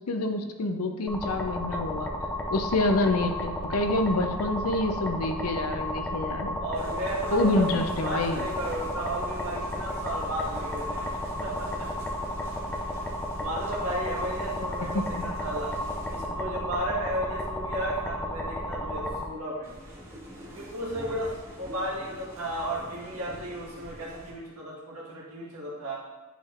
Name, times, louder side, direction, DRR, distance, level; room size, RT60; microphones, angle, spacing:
voice 1, 0.1-2.1 2.5-6.6 7.3-8.4 14.8-15.1, left 2 dB, 80° left, 6 dB, 0.6 m, -27 dB
sound 1, 1.1-19.2, left 1 dB, 5° left, 0.5 m, -33 dB
voice 2, 6.6-11.9 12.8-13.0 13.4-15.7 16.1-19.7 20.5-26.0, right 1 dB, 80° right, -4 dB, 1.5 m, -34 dB
sound 2, 6.7-16.2 19.6-24.3, equal, 15° right, 1.3 m, -46 dB
9.0 x 4.3 x 2.5 m, 1.2 s
head